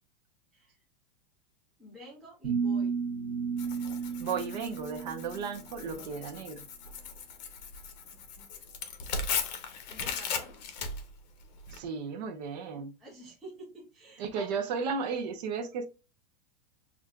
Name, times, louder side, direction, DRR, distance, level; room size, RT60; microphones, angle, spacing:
voice 1, 1.8-3.1 9.7-10.5 13.0-14.6, right 1 dB, ahead, 0.4 m, -50 dB
sound 1, 2.4-5.6, right 6 dB, 15° right, 1.2 m, -33 dB
Tearing, 3.6-11.8, left 5 dB, 45° left, 0.8 m, -38 dB
voice 2, 4.2-6.7 11.7-12.9 14.2-15.9, right 5 dB, 40° right, 0.8 m, -34 dB
6.1 x 2.5 x 2.3 m
supercardioid pair, 175°, 31 cm